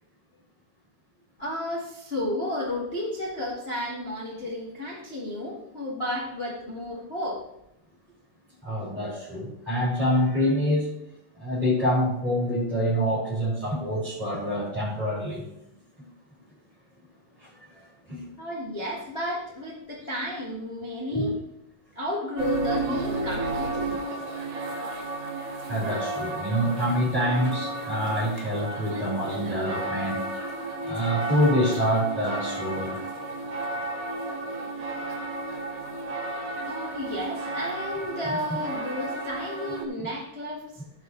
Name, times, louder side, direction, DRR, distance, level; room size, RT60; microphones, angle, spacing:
voice 1, 1.4-7.4 18.4-21.3 21.9-24.0 36.6-40.8, left 1 dB, 75° left, -4 dB, 0.5 m, -32 dB
voice 2, 8.6-10.9 11.4-15.4 17.4-17.5 18.1-18.3 21.1-21.3 24.0-24.2 25.7-30.2 30.8-33.0, equal, 10° right, -10 dB, 3.6 m, -26 dB
sound 1, 22.4-39.8, right 2 dB, 55° right, 2.5 m, -32 dB
16.0 x 6.4 x 3.2 m, 0.83 s
omnidirectional pair, 4.3 m